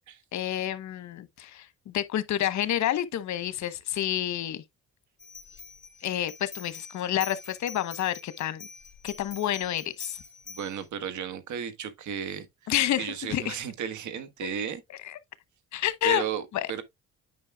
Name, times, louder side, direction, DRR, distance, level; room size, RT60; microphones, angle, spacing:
voice 1, 0.3-4.6 6.0-8.7 9.0-10.2 12.7-13.6 15.0-15.2 15.7-16.2 16.5-16.8, left 12 dB, 70° left, 1.0 m, -29 dB
sound 1, 5.2-10.9, left 4 dB, 40° left, 1.7 m, -45 dB
voice 2, 10.5-12.7 13.0-14.8 16.0-16.8, right 8 dB, 75° right, 1.5 m, -34 dB
9.7 x 5.5 x 2.3 m
cardioid pair, 90°, 30 cm